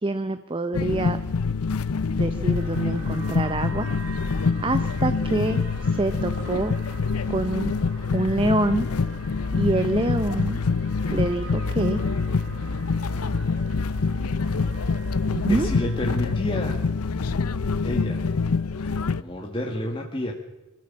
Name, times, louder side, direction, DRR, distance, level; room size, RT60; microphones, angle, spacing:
voice 1, 0.0-1.2 2.1-4.2 4.6-6.8 7.3-7.7 8.1-8.9 9.5-10.6 11.1-12.0 15.3-15.7, right 2 dB, 25° right, 10 dB, 0.7 m, -26 dB
sound 1, 0.7-19.2, left 4 dB, 80° left, 0.7 m, -25 dB
sound 2, 2.5-16.4, right 3 dB, 85° right, 7.2 m, -44 dB
voice 2, 15.5-16.8 17.8-18.2 18.7-20.3, left 1 dB, 25° left, 0 dB, 1.9 m, -30 dB
25.5 x 14.0 x 7.5 m, 1.1 s
head